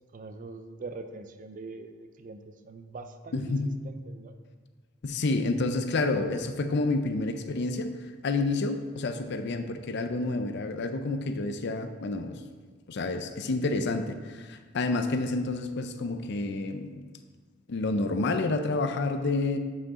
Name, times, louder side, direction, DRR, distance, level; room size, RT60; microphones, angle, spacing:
voice 1, 0.1-3.6 3.8-4.3, right 3 dB, 45° right, 8 dB, 0.5 m, -43 dB
voice 2, 3.3-3.7 5.0-12.4 12.9-17.0 17.7-19.6, left 3 dB, 60° left, 7 dB, 0.5 m, -29 dB
8.1 x 5.1 x 3.7 m, 1.5 s
head